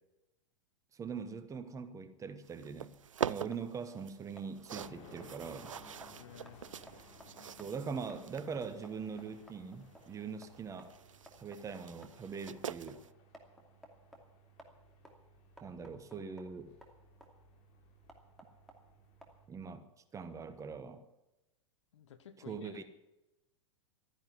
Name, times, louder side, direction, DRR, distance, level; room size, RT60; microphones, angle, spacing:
voice 1, 0.9-2.9 3.3-5.7 7.6-10.9 11.4-13.0 15.6-16.7 19.5-19.9 20.1-21.0 22.5-22.8, right 5 dB, 20° right, 10 dB, 1.2 m, -42 dB
sound 1, 2.4-13.1, right 8 dB, 80° right, 0.5 m, -45 dB
sound 2, 3.5-19.7, equal, ahead, 2.6 m, -60 dB
sound 3, 4.7-19.5, left 1 dB, 40° left, 3.2 m, -60 dB
voice 2, 6.2-6.6 21.9-22.8, left 9 dB, 70° left, 10 dB, 1.5 m, -53 dB
13.0 x 10.5 x 9.6 m, 1.0 s
figure-of-eight pair, 100°, 16 cm